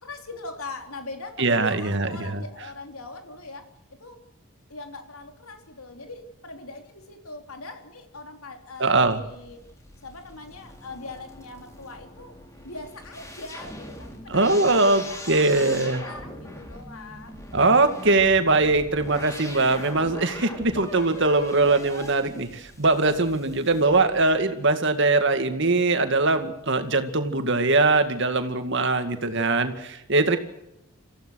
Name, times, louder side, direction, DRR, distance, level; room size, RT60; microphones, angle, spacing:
voice 1, 0.0-3.6 4.0-4.2 4.7-9.6 10.0-12.3 12.6-17.4 20.4-20.5 23.1-23.2 30.3-30.4, left 3 dB, 80° left, 5 dB, 3.6 m, -41 dB
voice 2, 1.4-2.4 8.8-9.2 14.3-16.0 17.5-30.4, right 3 dB, 55° right, 8 dB, 2.2 m, -21 dB
sound 1, 8.9-24.4, left 1 dB, 15° left, 3.9 m, -42 dB
27.0 x 15.5 x 6.5 m, 0.85 s
head